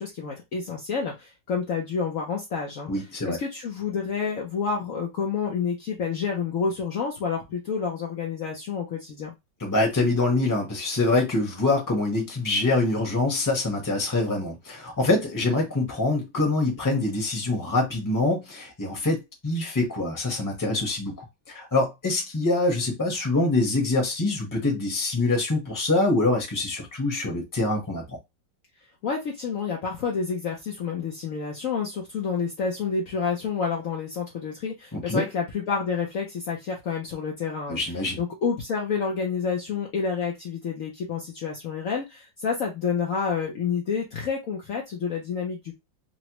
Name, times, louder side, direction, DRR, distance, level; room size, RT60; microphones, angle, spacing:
voice 1, 0.0-2.9 3.2-9.3 29.0-45.7, left 5 dB, 60° left, 1.0 m, -29 dB
voice 2, 2.9-3.4 9.6-21.1 21.5-28.2 34.9-35.2 37.7-38.2, left 2 dB, 15° left, 1.0 m, -25 dB
4.0 x 2.2 x 2.9 m
omnidirectional pair, 1.9 m